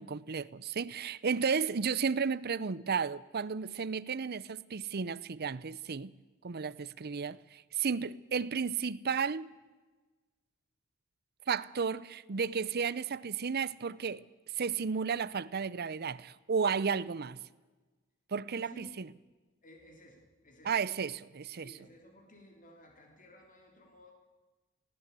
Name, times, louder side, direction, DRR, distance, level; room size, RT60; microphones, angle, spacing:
voice 1, 0.0-6.1 6.4-9.5 11.5-14.2 14.6-17.4 18.3-19.0 20.7-21.7, right 6 dB, 50° right, 0.6 m, -33 dB
voice 2, 18.5-18.9 19.6-20.7 21.6-24.1, equal, 40° left, 3.3 m, -55 dB
19.0 x 17.5 x 8.3 m
head